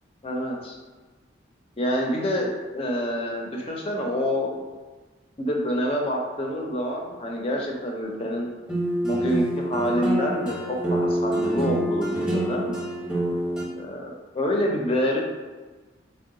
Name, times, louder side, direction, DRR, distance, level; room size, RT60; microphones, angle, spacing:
voice 1, 0.2-0.8 1.8-2.5 2.7-4.5 5.4-8.5 9.0-12.7 13.8-15.2, equal, 30° left, 0 dB, 0.5 m, -27 dB
sound 1, 8.7-13.6, right 1 dB, 5° right, 0.7 m, -26 dB
3.7 x 2.1 x 3.7 m, 1.3 s
head